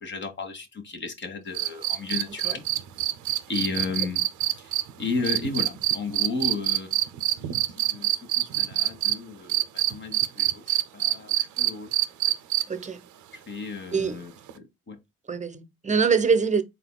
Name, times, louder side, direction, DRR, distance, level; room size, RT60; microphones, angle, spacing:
voice 1, 0.0-2.6 3.5-4.3 4.6-7.0 7.3-7.4 7.8-11.9 13.3-15.0, left 4 dB, 40° left, 1.4 m, -34 dB
sound 1, 1.5-9.1 9.5-12.8 14.5-14.6, right 14 dB, 75° right, 0.7 m, -25 dB
voice 2, 12.7-13.0 13.9-14.2 15.3-16.6, right 5 dB, 25° right, 0.8 m, -24 dB
4.1 x 4.0 x 2.2 m
cardioid pair, 90°, 30 cm